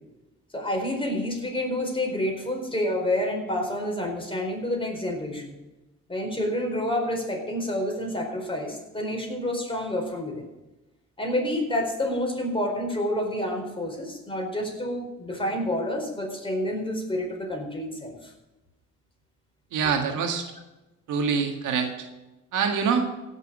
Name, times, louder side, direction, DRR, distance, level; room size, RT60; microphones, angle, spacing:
voice 1, 0.5-5.6 6.1-10.5 11.2-18.3 19.8-19.9, left 1 dB, 15° left, 1 dB, 4.4 m, -28 dB
voice 2, 19.7-20.5 21.1-22.1 22.5-23.1, right 6 dB, 85° right, 4 dB, 1.9 m, -25 dB
16.5 x 6.6 x 6.2 m, 1.0 s
cardioid pair, 90°, 30 cm